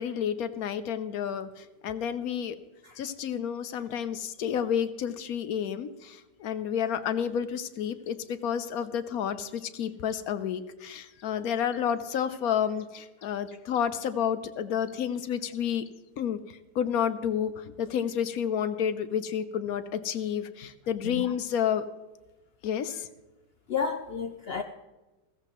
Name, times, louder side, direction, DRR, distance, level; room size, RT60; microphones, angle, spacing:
voice 1, 0.0-2.6 3.0-15.9 16.2-21.8 22.6-23.1, left 8 dB, 65° left, 12 dB, 1.1 m, -30 dB
voice 2, 21.0-21.3 23.7-24.6, left 6 dB, 90° left, 7 dB, 0.5 m, -32 dB
15.5 x 14.5 x 3.0 m, 1.1 s
omnidirectional pair, 1.9 m